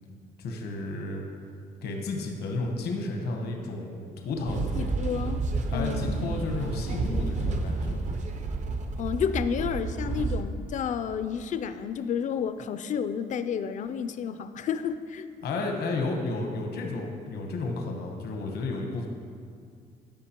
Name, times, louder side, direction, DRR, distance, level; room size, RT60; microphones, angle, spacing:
voice 1, 0.4-1.2 1.8-4.7 5.7-8.0 15.4-19.1, left 3 dB, 80° left, 2 dB, 1.0 m, -32 dB
sound 1, 4.5-10.4, right 3 dB, 45° right, 0.6 m, -30 dB
voice 2, 4.8-6.3 9.0-15.3, left 7 dB, 50° left, 11 dB, 0.4 m, -31 dB
12.5 x 5.1 x 2.9 m, 2.2 s
cardioid pair, 100°, 17 cm